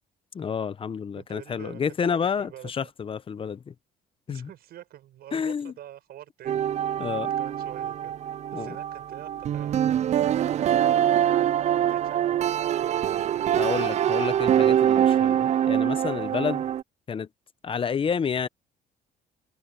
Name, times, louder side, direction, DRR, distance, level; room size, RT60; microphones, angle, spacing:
voice 1, 0.3-3.7 4.3-4.5 5.3-5.7 7.0-7.3 8.5-8.8 13.5-16.6 17.1-17.3 17.6-18.5, left 6 dB, 30° left, 0.8 m, -29 dB
voice 2, 1.2-2.9 4.3-11.6 11.9-12.5 12.8-13.4 16.5-16.7, right 12 dB, 70° right, 6.9 m, -47 dB
sound 1, 6.5-16.8, right 10 dB, 40° right, 0.4 m, -24 dB
cardioid pair, 110°, 17 cm